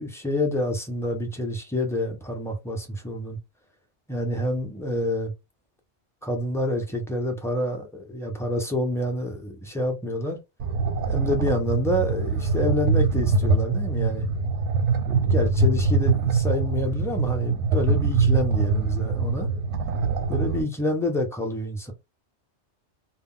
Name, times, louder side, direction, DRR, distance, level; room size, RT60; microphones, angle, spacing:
voice 1, 0.0-3.4 4.1-5.3 6.2-10.4 11.1-14.3 15.1-19.5 20.3-21.9, left 1 dB, 5° left, 0.4 m, -27 dB
sound 1, 10.6-20.6, right 4 dB, 80° right, 1.0 m, -23 dB
2.2 x 2.0 x 3.6 m
omnidirectional pair, 1.2 m